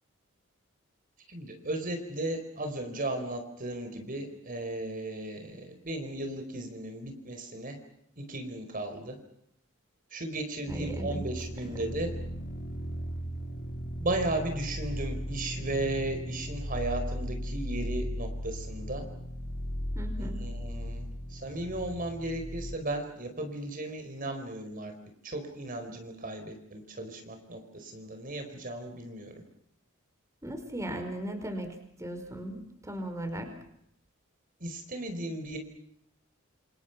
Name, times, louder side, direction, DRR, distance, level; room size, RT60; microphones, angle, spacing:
voice 1, 1.3-7.8 8.2-9.2 10.1-12.1 14.0-19.0 20.2-24.9 25.2-29.4 34.6-35.6, right 2 dB, 45° right, 6 dB, 4.7 m, -35 dB
sound 1, 10.7-22.8, equal, 50° left, 3.4 m, -36 dB
voice 2, 10.7-11.2 19.9-20.5 30.4-33.5, right 1 dB, 15° right, 6 dB, 5.1 m, -37 dB
28.5 x 28.0 x 6.0 m, 0.75 s
head